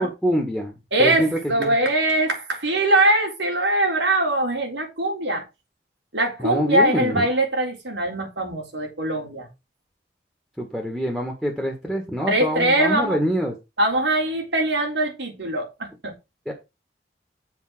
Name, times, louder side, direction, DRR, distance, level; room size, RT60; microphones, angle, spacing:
voice 1, 0.0-0.7 1.0-1.3 1.6-1.7 6.4-7.3 10.6-13.5 16.4-16.5, equal, ahead, 1.6 m, -25 dB
voice 2, 0.9-5.4 6.1-9.5 12.3-13.2 13.8-16.1, right 1 dB, 90° right, 3.9 m, -22 dB
7.4 x 4.8 x 6.1 m
head